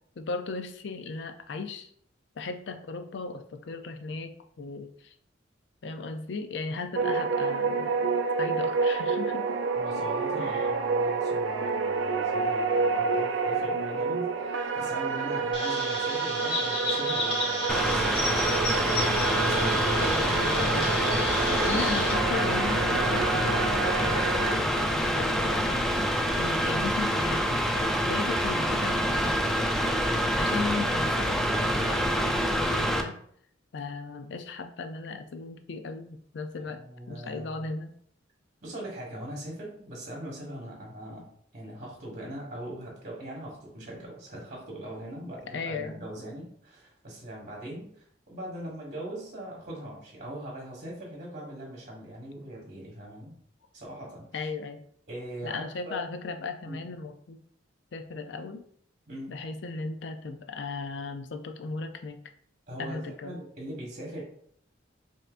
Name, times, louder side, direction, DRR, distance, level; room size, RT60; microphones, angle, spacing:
voice 1, 0.2-1.9 2.4-5.1 5.8-9.6 10.4-10.7 19.9-20.9 21.6-29.7 29.9-33.2 33.7-36.8 37.1-37.9 45.5-45.9 54.3-54.8 55.4-57.4 57.9-58.6 59.3-62.2 62.8-63.4, left 4 dB, 65° left, 7 dB, 0.4 m, -36 dB
sound 1, 6.9-24.6, right 4 dB, 75° right, 0.4 m, -29 dB
voice 2, 9.8-18.9 19.4-19.8 20.8-22.0 36.6-37.7 38.6-41.3 41.5-53.3 53.7-54.5 55.1-56.0 56.6-56.8 59.1-59.3 62.7-64.2, right 1 dB, 40° right, -4 dB, 1.4 m, -41 dB
Chirp tweet, 15.5-22.1, left 2 dB, 30° left, 1.1 m, -33 dB
Mechanical fan, 17.7-33.0, equal, ahead, 0.3 m, -26 dB
5.5 x 2.8 x 2.5 m, 0.65 s
head